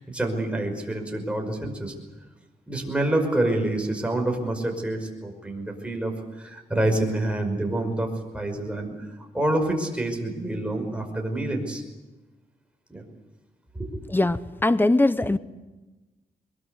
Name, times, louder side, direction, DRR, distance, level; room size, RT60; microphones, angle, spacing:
voice 1, 0.0-1.9 2.7-8.1 8.3-8.9 9.3-11.8 12.9-13.0 13.7-14.0, right 1 dB, 5° right, 2 dB, 5.4 m, -27 dB
voice 2, 14.1-15.4, left 2 dB, 15° left, 14 dB, 0.9 m, -21 dB
23.5 x 22.0 x 8.2 m, 1.2 s
cardioid pair, 110°, 16 cm